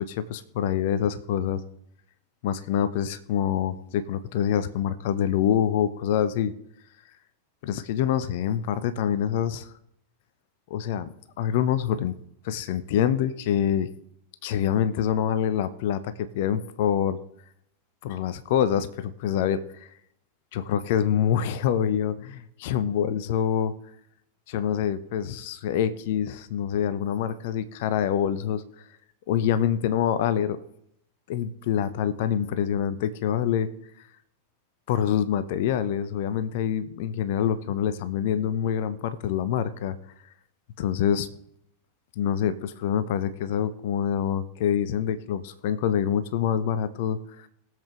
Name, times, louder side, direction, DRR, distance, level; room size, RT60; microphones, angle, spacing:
voice 1, 0.0-1.6 2.4-6.5 7.6-9.7 10.7-11.1 11.4-12.1 12.4-13.9 14.4-17.2 18.0-19.9 20.5-23.7 24.5-28.6 29.3-30.6 31.3-33.7 34.9-40.0 40.8-41.3 42.2-47.5, left 9 dB, 50° left, 14 dB, 0.7 m, -26 dB
21.5 x 7.6 x 3.1 m, 0.75 s
figure-of-eight pair, 90°, 0 cm